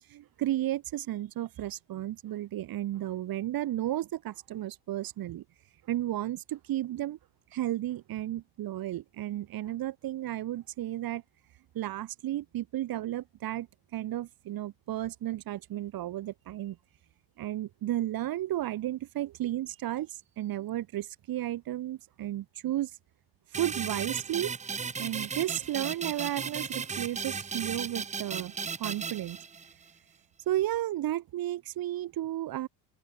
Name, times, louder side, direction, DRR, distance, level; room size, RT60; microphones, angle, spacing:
voice 1, 0.1-5.4 5.9-7.2 7.5-11.2 11.7-13.7 13.9-16.8 17.4-22.9 23.6-24.5 25.0-28.5 28.8-29.4 30.5-32.7, right 13 dB, 45° right, 1.2 m, -33 dB
sound 1, 23.5-29.9, right 5 dB, 15° right, 0.6 m, -36 dB
hypercardioid pair, 70°, 49 cm